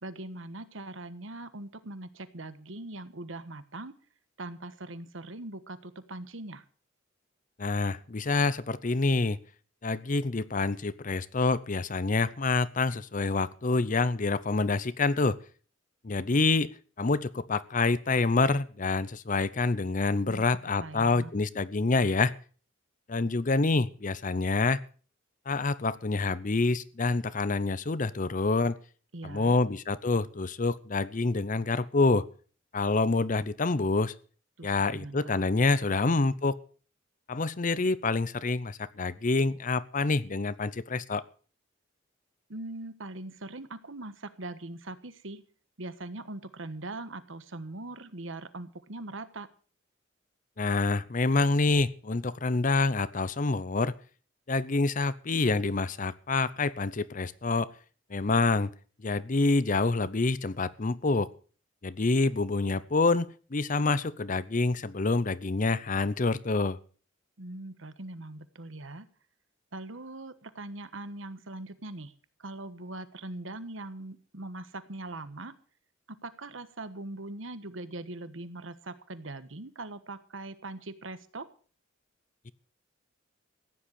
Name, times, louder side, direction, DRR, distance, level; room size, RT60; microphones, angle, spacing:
voice 1, 0.0-3.9 4.4-6.6 20.3-20.4 20.8-21.4 29.1-29.6 34.6-35.3 36.1-36.2 42.5-45.4 45.8-49.5 67.4-69.1 69.7-72.1 72.4-75.5 76.1-81.5, right 2 dB, 75° right, 12 dB, 1.3 m, -41 dB
voice 2, 7.6-9.4 9.8-15.4 16.0-16.7 17.0-22.3 23.1-24.8 25.5-28.8 29.2-32.3 32.7-34.1 34.6-36.6 37.3-41.2 50.6-53.9 54.5-57.7 58.1-58.7 59.0-61.3 61.8-66.8, left 3 dB, 40° left, 18 dB, 0.7 m, -27 dB
15.5 x 10.5 x 6.5 m, 0.41 s
head